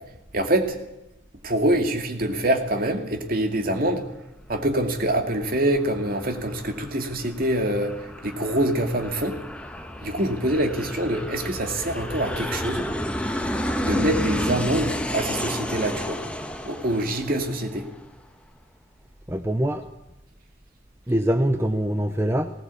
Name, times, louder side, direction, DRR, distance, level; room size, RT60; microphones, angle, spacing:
voice 1, 0.3-0.8 1.4-4.0 4.5-9.4 10.0-12.9 13.8-16.2 16.6-17.8, right 1 dB, 45° right, 5 dB, 2.6 m, -25 dB
Aircraft, 4.9-18.1, equal, 5° left, 1.4 m, -31 dB
voice 2, 19.3-19.8 21.1-22.5, equal, 10° right, 7 dB, 0.8 m, -23 dB
20.0 x 18.0 x 8.4 m, 0.95 s
head